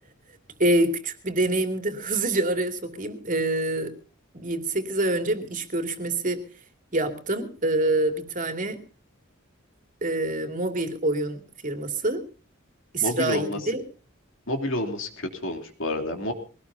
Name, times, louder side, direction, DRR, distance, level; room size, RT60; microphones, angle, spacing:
voice 1, 0.6-3.9 4.3-6.4 6.9-8.8 10.0-11.4 11.6-12.2 12.9-13.8, right 2 dB, 40° right, 6 dB, 2.6 m, -26 dB
voice 2, 13.0-13.6 14.5-16.3, left 1 dB, 65° left, 4 dB, 3.2 m, -29 dB
22.5 x 18.5 x 2.8 m, 0.37 s
head